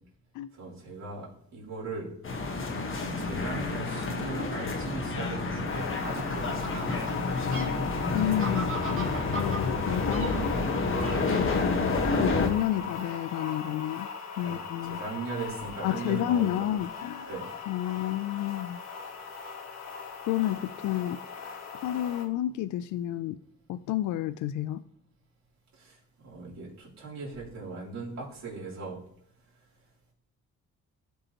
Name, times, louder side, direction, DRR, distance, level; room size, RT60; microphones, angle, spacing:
voice 1, 0.6-2.1 2.5-2.7 3.2-7.3 12.7-12.8 14.4-16.7 17.3-17.4 25.8-26.0 26.2-29.0, right 3 dB, 65° right, -7 dB, 3.6 m, -39 dB
sound 1, 2.2-12.5, left 3 dB, 45° left, 1.4 m, -29 dB
Fowl, 5.5-11.7, right 3 dB, 45° right, 2.3 m, -41 dB
sound 2, 5.7-22.3, left 6 dB, 60° left, 1.4 m, -39 dB
voice 2, 8.1-10.3 11.3-14.1 14.4-15.0 15.8-17.3 17.7-18.8 20.3-21.2 21.7-23.4 23.7-24.8, left 13 dB, 80° left, 12 dB, 0.4 m, -30 dB
15.0 x 5.2 x 3.0 m, 0.68 s
cardioid pair, 90°, 30 cm